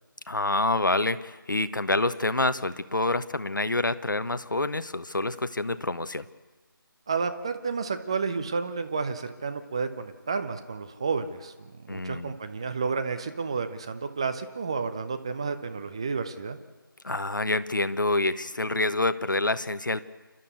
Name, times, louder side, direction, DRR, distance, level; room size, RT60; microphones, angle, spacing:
voice 1, 0.3-6.3 11.9-12.4 17.0-20.0, left 2 dB, 60° left, 13 dB, 1.1 m, -27 dB
voice 2, 7.1-16.6, right 5 dB, 15° right, 8 dB, 0.6 m, -31 dB
29.0 x 12.5 x 8.3 m, 1.2 s
figure-of-eight pair, 165°, 12 cm